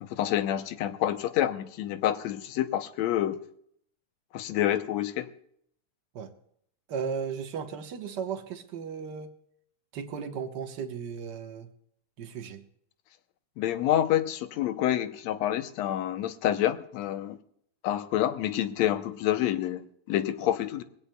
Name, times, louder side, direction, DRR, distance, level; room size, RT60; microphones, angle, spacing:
voice 1, 0.0-3.4 4.3-5.3 13.6-17.4 17.8-20.8, left 12 dB, 75° left, 1.8 m, -28 dB
voice 2, 6.9-9.3 9.9-11.7 12.2-12.6, right 6 dB, 70° right, 1.0 m, -35 dB
23.0 x 16.5 x 2.3 m
omnidirectional pair, 3.5 m